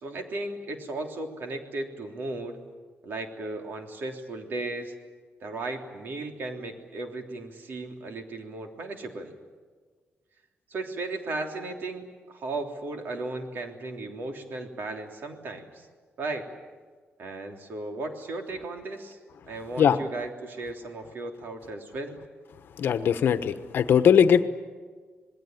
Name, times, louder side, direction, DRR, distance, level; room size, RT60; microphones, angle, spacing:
voice 1, 0.0-2.6 3.0-4.9 5.4-9.3 10.7-15.9 16.2-16.5 17.2-19.2 19.5-22.2, right 2 dB, 60° right, 4 dB, 3.3 m, -35 dB
voice 2, 22.8-24.4, left 8 dB, 65° left, 11 dB, 1.2 m, -20 dB
27.0 x 20.5 x 9.3 m, 1.5 s
wide cardioid pair, 165°, 4 cm